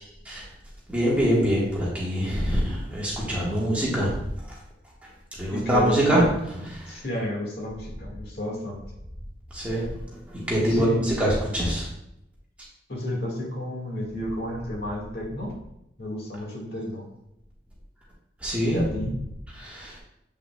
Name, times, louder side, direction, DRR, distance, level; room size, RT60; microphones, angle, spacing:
voice 1, 0.9-4.6 5.4-7.0 9.5-11.9 18.4-18.8 19.6-20.0, equal, 10° right, -7 dB, 1.4 m, -25 dB
voice 2, 5.5-6.2 6.9-8.8 10.7-11.1 12.9-15.5 16.0-17.1 18.7-19.2, left 1 dB, 60° left, -2 dB, 1.8 m, -31 dB
7.9 x 5.6 x 2.3 m, 0.84 s
head